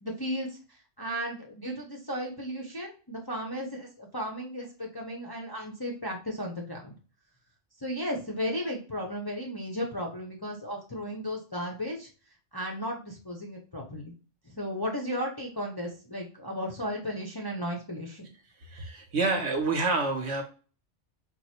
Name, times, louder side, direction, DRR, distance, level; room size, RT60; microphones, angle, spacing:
voice 1, 0.0-0.6 1.0-7.0 7.8-12.1 12.5-14.1 14.5-18.3, equal, 25° left, -2 dB, 0.6 m, -35 dB
voice 2, 18.6-20.4, right 3 dB, 65° right, 3 dB, 1.3 m, -28 dB
4.6 x 2.0 x 4.2 m, 0.36 s
omnidirectional pair, 1.2 m